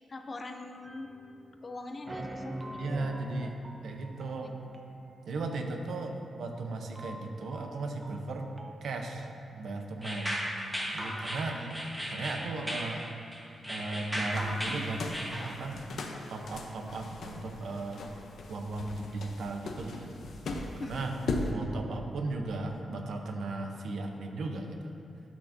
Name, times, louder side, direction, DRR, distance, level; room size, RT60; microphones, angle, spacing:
voice 1, 0.1-1.1 1.6-3.1 3.4-3.5 4.4-4.5 11.5-11.7 20.8-21.1, left 2 dB, 30° left, 6 dB, 0.4 m, -43 dB
sound 1, 0.8-1.6 2.1-9.5, right 1 dB, 20° right, 0.5 m, -44 dB
voice 2, 2.8-3.6 3.8-4.6 5.3-8.5 8.8-10.4 10.9-11.6 12.1-13.1 13.7-15.9 16.3-18.0 18.5-20.2 20.8-21.1 21.5-24.9, right 3 dB, 70° right, 3 dB, 0.7 m, -36 dB
sound 2, 10.0-15.5, equal, 5° right, 1.2 m, -36 dB
sound 3, 14.3-21.5, left 3 dB, 65° left, 0.7 m, -39 dB
12.0 x 6.1 x 2.6 m, 2.7 s
wide cardioid pair, 160°, 0 cm